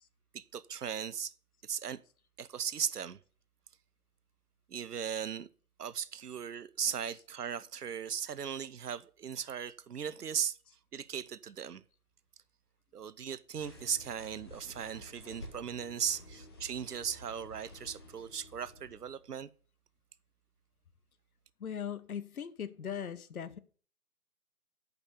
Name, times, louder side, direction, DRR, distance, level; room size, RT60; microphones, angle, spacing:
voice 1, 0.3-1.3 1.6-2.0 2.4-3.2 4.7-5.5 5.8-10.6 10.9-11.8 12.9-19.5, right 8 dB, 85° right, 0.7 m, -37 dB
sound 1, 13.6-19.3, left 1 dB, 15° left, 0.7 m, -52 dB
voice 2, 21.6-23.6, left 8 dB, 65° left, 0.9 m, -39 dB
7.2 x 5.3 x 6.7 m
figure-of-eight pair, 150°, 46 cm